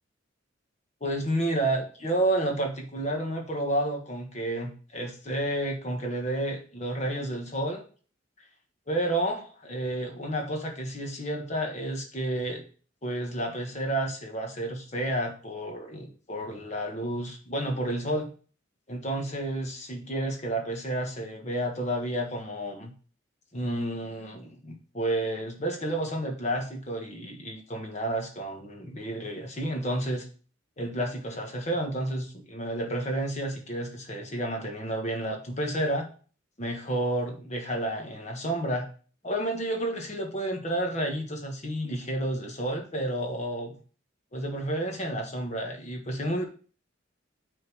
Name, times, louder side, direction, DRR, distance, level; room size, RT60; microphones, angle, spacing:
voice 1, 1.0-7.8 8.9-12.7 13.0-18.3 18.9-22.9 23.5-30.3 30.8-36.1 36.6-38.9 39.2-43.7 44.3-46.4, right 1 dB, 35° left, 2 dB, 1.4 m, -31 dB
6.5 x 3.7 x 6.1 m, 0.40 s
head